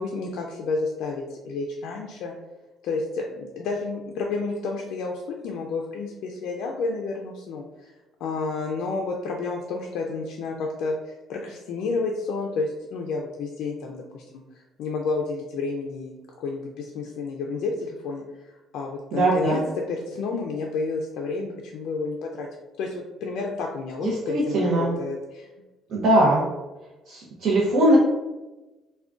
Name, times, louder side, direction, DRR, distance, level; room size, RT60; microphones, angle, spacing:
voice 1, 0.0-2.3 2.8-7.9 8.2-19.6 19.9-22.5 22.8-25.5, left 3 dB, 75° left, 0 dB, 0.3 m, -30 dB
voice 2, 19.1-19.6 24.0-24.9 25.9-26.4 27.1-28.0, right 1 dB, 55° right, -5 dB, 0.6 m, -21 dB
3.5 x 2.1 x 2.4 m, 1.1 s
cardioid pair, 145°, 0 cm